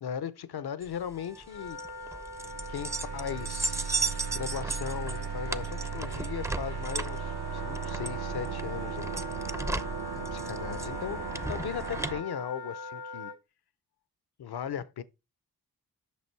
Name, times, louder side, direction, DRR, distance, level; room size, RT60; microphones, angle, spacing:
voice 1, 0.0-1.8 2.7-9.2 10.2-11.2 11.5-13.3 14.4-15.0, left 8 dB, 70° left, 0.7 m, -38 dB
sound 1, 0.8-12.1, right 3 dB, 10° right, 0.4 m, -36 dB
Wind instrument woodwind instrument, 1.1-13.4, left 2 dB, 90° left, 1.7 m, -42 dB
sound 2, 2.4-12.2, right 6 dB, 75° right, 0.8 m, -37 dB
8.4 x 6.0 x 4.5 m
wide cardioid pair, 85°, 39 cm